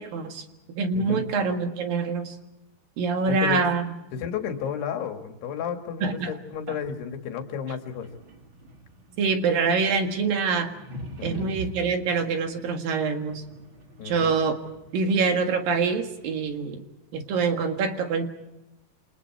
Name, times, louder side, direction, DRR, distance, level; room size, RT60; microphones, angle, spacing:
voice 1, 0.0-2.4 3.0-3.9 6.0-6.3 9.2-10.7 11.2-13.4 14.0-14.6 14.9-16.8 17.1-18.3, right 4 dB, 60° right, 5 dB, 3.4 m, -25 dB
voice 2, 0.9-1.3 3.2-3.6 4.1-8.1 11.2-11.5 14.0-14.4, left 7 dB, 75° left, 5 dB, 3.9 m, -32 dB
sound 1, 7.8-16.6, right 2 dB, 35° right, 2.9 m, -44 dB
28.5 x 27.0 x 4.7 m, 0.92 s
omnidirectional pair, 4.7 m